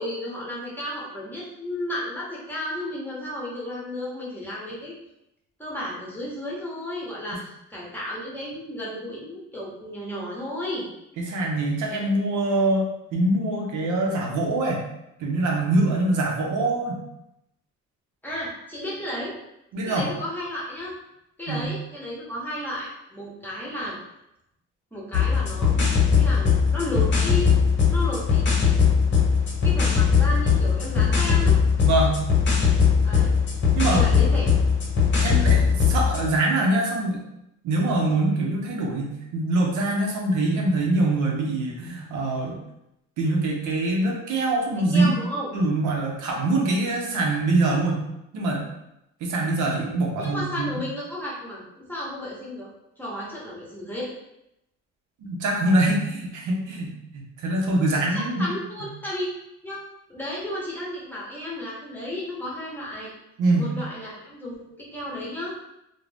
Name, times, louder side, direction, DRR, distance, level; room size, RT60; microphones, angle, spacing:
voice 1, 0.0-4.9 5.6-10.9 18.2-19.3 19.9-20.9 21.4-24.0 24.9-27.5 27.9-28.7 29.6-31.6 33.0-33.3 33.9-34.5 44.9-45.5 50.2-52.7 53.0-54.1 58.1-59.3 59.6-59.8 60.1-63.1 63.5-65.5, left 1 dB, 5° left, -6 dB, 1.0 m, -33 dB
voice 2, 11.2-12.8 13.1-14.8 15.2-17.0 19.7-20.1 21.5-21.7 31.8-32.2 33.7-34.0 35.2-37.2 37.6-42.6 43.2-45.1 45.5-48.0 48.3-48.7 49.2-50.7 55.2-58.5 58.8-58.9 63.4-63.7, right 2 dB, 80° right, -1 dB, 0.7 m, -24 dB
sound 1, 25.1-36.3, left 6 dB, 40° left, 0.8 m, -20 dB
2.4 x 2.1 x 3.2 m, 0.84 s
cardioid pair, 90°, 30 cm